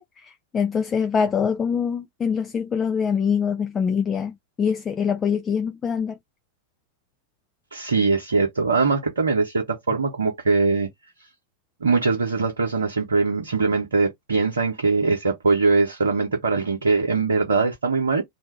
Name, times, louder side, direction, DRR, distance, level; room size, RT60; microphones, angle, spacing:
voice 1, 0.0-6.2, left 6 dB, 20° left, 0.4 m, -24 dB
voice 2, 7.7-10.9 11.8-18.2, right 4 dB, 70° right, 0.7 m, -22 dB
2.6 x 2.2 x 3.1 m
figure-of-eight pair, 90°, 0 cm